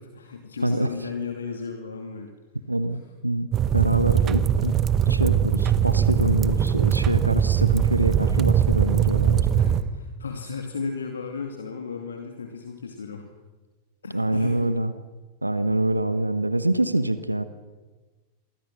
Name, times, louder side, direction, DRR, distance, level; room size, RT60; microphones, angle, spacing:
voice 1, 0.0-2.4 9.5-13.3 14.0-14.7, left 5 dB, 70° left, 4 dB, 2.4 m, -34 dB
voice 2, 0.6-0.9 2.7-3.5 3.7-4.8 5.1-9.5 14.1-14.9 15.4-17.4, right 1 dB, 85° right, 13 dB, 1.1 m, -25 dB
sound 1, 3.5-9.8, right 9 dB, 30° right, 1.3 m, -21 dB
28.5 x 23.0 x 6.3 m, 1.3 s
figure-of-eight pair, 90°, 0 cm